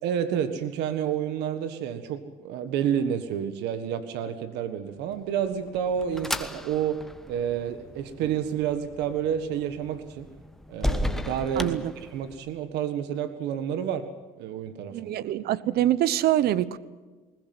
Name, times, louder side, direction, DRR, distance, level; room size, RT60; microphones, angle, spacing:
voice 1, 0.0-7.0 7.3-10.3 10.7-11.7 12.1-14.1 14.4-15.1, right 9 dB, 90° right, 10 dB, 1.6 m, -29 dB
sound 1, 5.2-12.6, left 1 dB, ahead, 1.3 m, -35 dB
voice 2, 14.9-16.8, right 13 dB, 70° right, 17 dB, 1.0 m, -24 dB
21.0 x 20.0 x 7.8 m, 1.3 s
cardioid pair, 110°, 17 cm